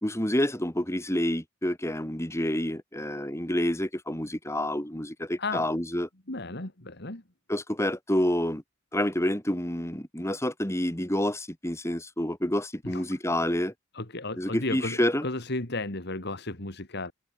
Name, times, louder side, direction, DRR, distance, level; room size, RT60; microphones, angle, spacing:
voice 1, 0.0-6.1 7.5-8.6 8.9-13.7 14.4-15.3, left 1 dB, 15° left, 3.6 m, -28 dB
voice 2, 5.4-5.7 6.3-7.2 12.8-13.0 13.9-17.1, left 2 dB, 55° left, 3.1 m, -34 dB
head